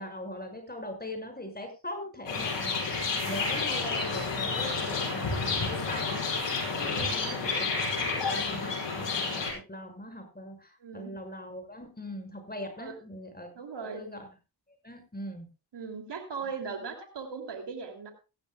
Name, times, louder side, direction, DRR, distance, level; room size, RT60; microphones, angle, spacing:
voice 1, 0.0-6.2 6.7-14.2 14.8-15.5, left 1 dB, 20° left, 5 dB, 6.0 m, -41 dB
sound 1, 2.3-9.5, left 4 dB, 80° left, 5.6 m, -30 dB
voice 2, 6.9-7.2 10.8-11.1 12.8-13.0 13.5-14.0 15.7-18.1, right 5 dB, 70° right, 5 dB, 2.9 m, -38 dB
16.0 x 14.5 x 2.3 m, 0.30 s
supercardioid pair, 45°, 43 cm